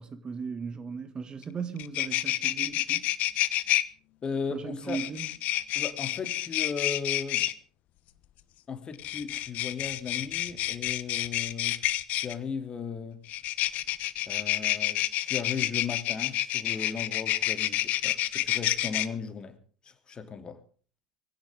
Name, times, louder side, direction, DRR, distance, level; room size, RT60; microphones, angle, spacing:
voice 1, 0.0-3.0 4.5-5.3, right 5 dB, 25° right, 2.0 m, -37 dB
sound 1, 1.4-1.5 1.8-3.8 4.9-7.5 8.9-12.3 13.3-19.1, left 15 dB, 45° left, 1.2 m, -29 dB
voice 2, 4.2-5.0 5.7-7.5 8.7-11.9 12.2-13.2 14.2-19.6 19.8-20.6, left 6 dB, 25° left, 2.9 m, -36 dB
23.5 x 16.5 x 3.7 m
figure-of-eight pair, 75°, 3 cm